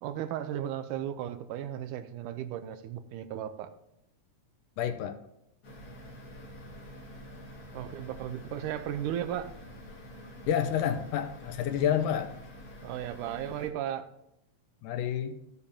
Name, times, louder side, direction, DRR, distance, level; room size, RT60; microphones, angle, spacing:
voice 1, 0.0-3.7 7.7-9.5 12.8-14.1, right 11 dB, 80° right, 10 dB, 2.1 m, -35 dB
voice 2, 4.8-5.2 10.5-12.3 14.8-15.4, left 9 dB, 90° left, 6 dB, 2.3 m, -29 dB
sound 1, 5.6-13.7, equal, 45° left, 1.3 m, -47 dB
14.0 x 6.8 x 2.8 m, 0.83 s
omnidirectional pair, 3.7 m